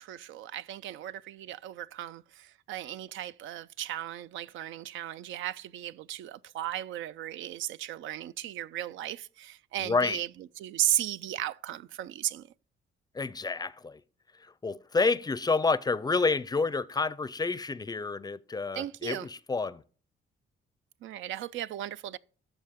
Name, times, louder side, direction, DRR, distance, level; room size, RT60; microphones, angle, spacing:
voice 1, 0.0-10.3 10.6-12.5 18.7-19.3 21.0-22.2, right 12 dB, 80° right, 0.4 m, -35 dB
voice 2, 9.8-10.2 13.1-14.0 14.4-19.8, left 4 dB, 20° left, 0.5 m, -29 dB
13.0 x 4.5 x 3.6 m
cardioid pair, 90°, 20 cm